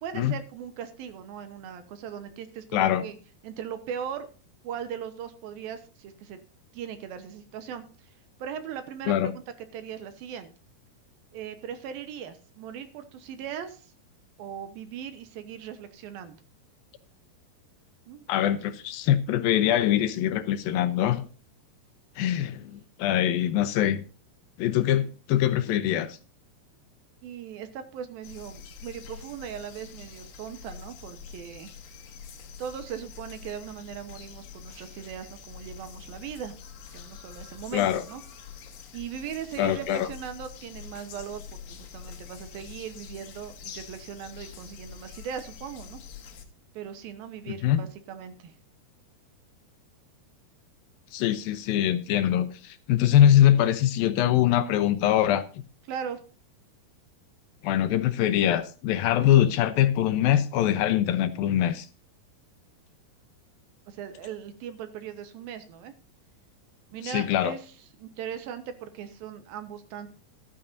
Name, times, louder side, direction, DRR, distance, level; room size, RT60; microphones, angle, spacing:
voice 1, 0.0-3.2 3.4-4.3 4.6-6.4 6.7-8.1 8.4-9.4 9.7-10.5 11.3-13.9 14.4-16.4 18.1-18.3 27.2-31.7 32.6-36.5 36.9-38.2 38.9-46.0 46.7-48.5 55.9-56.2 63.9-65.9 66.9-67.7 68.0-70.1, right 8 dB, 75° right, 2.8 m, -39 dB
voice 2, 2.7-3.0 9.1-9.3 18.3-21.3 22.2-24.0 24.6-26.2 37.7-38.0 39.6-40.1 47.5-47.8 51.1-55.4 57.6-61.9 67.0-67.5, left 11 dB, 75° left, 2.3 m, -23 dB
sound 1, 28.2-46.4, left 7 dB, 60° left, 2.6 m, -45 dB
14.5 x 12.5 x 2.7 m
omnidirectional pair, 4.5 m